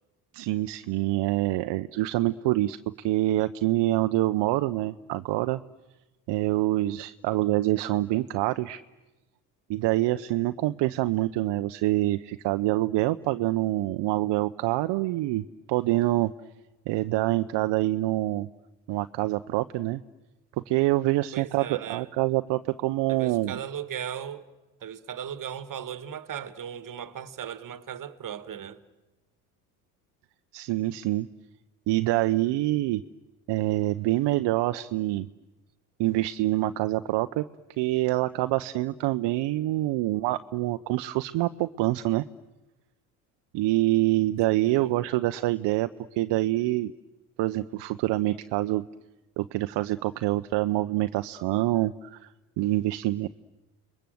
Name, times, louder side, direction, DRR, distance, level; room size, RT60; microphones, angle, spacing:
voice 1, 0.3-2.8 3.0-5.6 6.3-8.8 9.7-16.3 16.9-18.5 18.9-20.0 20.7-23.6 30.5-31.3 31.9-33.0 33.5-35.3 36.0-37.4 37.8-42.2 43.5-46.9 47.4-48.8 49.4-52.3 52.6-53.3, right 17 dB, 60° right, 0.8 m, -26 dB
voice 2, 21.3-22.1 23.1-24.5 24.8-28.8 44.6-44.9, right 9 dB, 40° right, 1.8 m, -37 dB
30.0 x 22.0 x 7.8 m
supercardioid pair, 75°, 47 cm